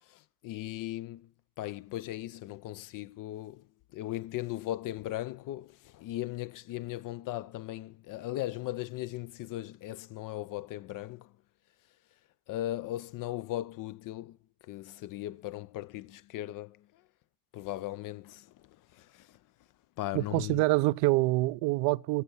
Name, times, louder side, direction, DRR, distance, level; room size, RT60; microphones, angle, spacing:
voice 1, 0.0-11.3 12.5-14.4 14.6-17.0 17.5-19.4 20.0-20.6, left 14 dB, 45° left, 0.5 m, -38 dB
voice 2, 20.1-22.2, right 22 dB, 60° right, 0.5 m, -26 dB
14.0 x 7.2 x 6.1 m
hypercardioid pair, 60°, 46 cm